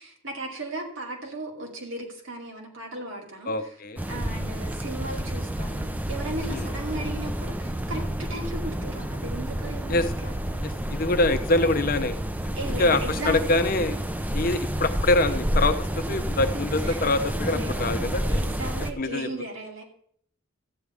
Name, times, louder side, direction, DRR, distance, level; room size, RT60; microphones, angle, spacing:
voice 1, 0.0-3.8 4.1-11.0 12.5-13.4 16.5-17.1 17.4-17.9 18.3-19.8, right 1 dB, 75° right, 0 dB, 2.7 m, -36 dB
voice 2, 3.5-4.0 6.5-6.7 9.9-10.0 10.6-12.2 12.8-14.0 14.3-18.2 19.0-19.3, left 2 dB, 45° left, 9 dB, 0.7 m, -24 dB
sound 1, 4.0-18.9, right 1 dB, 10° right, 0.5 m, -29 dB
13.5 x 9.5 x 3.5 m, 0.63 s
head